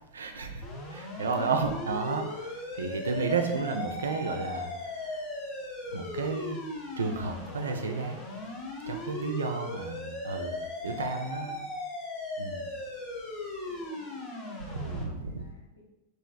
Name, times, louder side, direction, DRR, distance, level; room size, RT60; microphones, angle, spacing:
voice 1, 0.1-0.6 0.9-5.2 5.9-6.6 7.0-8.2 8.9-11.6 12.4-12.7 14.7-15.4, right 4 dB, 70° right, 4 dB, 0.4 m, -32 dB
sound 1, 0.6-15.0, left 2 dB, 30° left, 0.8 m, -38 dB
voice 2, 11.1-11.6 13.7-15.8, equal, 80° left, -4 dB, 0.9 m, -58 dB
3.0 x 2.6 x 3.9 m, 0.97 s
figure-of-eight pair, 90°, 0 cm